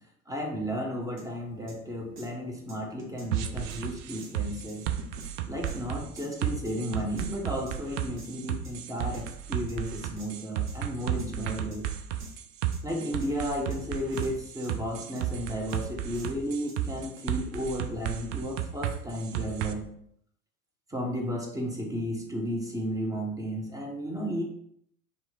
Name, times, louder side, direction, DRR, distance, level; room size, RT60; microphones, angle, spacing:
voice 1, 0.3-4.9 5.5-11.9 12.8-19.9 20.9-24.4, equal, 10° right, 1 dB, 0.6 m, -33 dB
sound 1, 1.2-1.3 1.7-1.8 2.2-2.3 2.7-3.3 3.7-3.8 4.2-4.3 4.7-5.3 5.7-5.8 6.2-6.3 6.7-7.3 7.7-7.8 8.2-8.3 8.6-9.3 9.7-9.8 10.2-10.3 10.7-10.8 11.0-11.3 11.7-11.8 12.2-12.3 12.7-13.3 13.7-13.8 14.1-14.3 14.6-15.3 15.7-15.8 16.1-16.3 16.7-17.2, right 1 dB, 80° right, 1.0 m, -47 dB
sound 2, 3.3-19.7, right 11 dB, 55° right, 0.5 m, -33 dB
2.8 x 2.5 x 3.8 m, 0.67 s
figure-of-eight pair, 80°, 45 cm